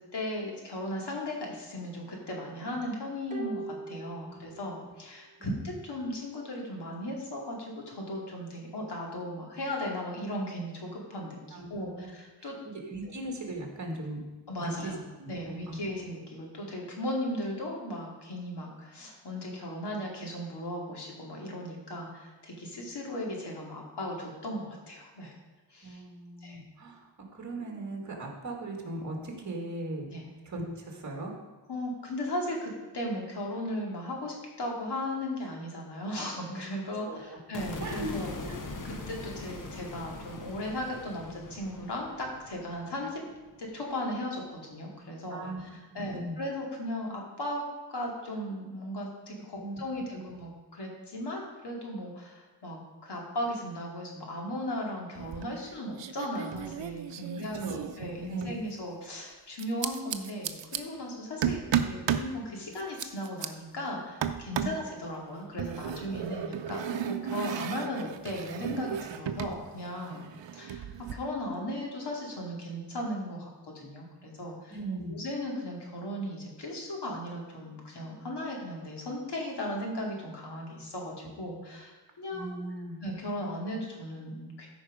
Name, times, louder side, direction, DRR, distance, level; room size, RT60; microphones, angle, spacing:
voice 1, 0.1-12.6 13.0-13.1 14.5-15.0 15.3-25.3 25.7-26.0 26.4-26.6 30.1-30.3 31.7-38.3 38.8-43.3 43.6-47.6 47.9-70.2 70.5-70.8 71.1-74.8 75.1-82.6 83.0-84.7, left 1 dB, 65° left, -1 dB, 2.5 m, -37 dB
sound 1, 3.3-4.9 5.2-5.3, right 4 dB, 20° right, 1.0 m, -41 dB
voice 2, 11.5-12.5 12.7-14.2 14.6-14.9 15.2-15.8 25.8-27.0 27.3-30.1 30.5-31.3 37.0-37.4 37.8-38.1 38.4-38.5 45.3-45.6 45.9-46.4 49.5-50.3 57.3-57.9 58.3-58.5 64.6-64.7 74.7-75.2 82.3-83.0, right 2 dB, 40° right, 1 dB, 2.1 m, -38 dB
sound 2, 37.5-43.8, left 2 dB, 45° left, 1.1 m, -42 dB
sound 3, 55.2-55.7 56.0-58.6 59.6-60.8 61.4-62.3 62.7-63.5 64.2-64.8 65.6-69.6 69.8-71.1, right 9 dB, 80° right, 0.7 m, -34 dB
13.5 x 5.3 x 5.0 m, 1.2 s
wide cardioid pair, 160°, 43 cm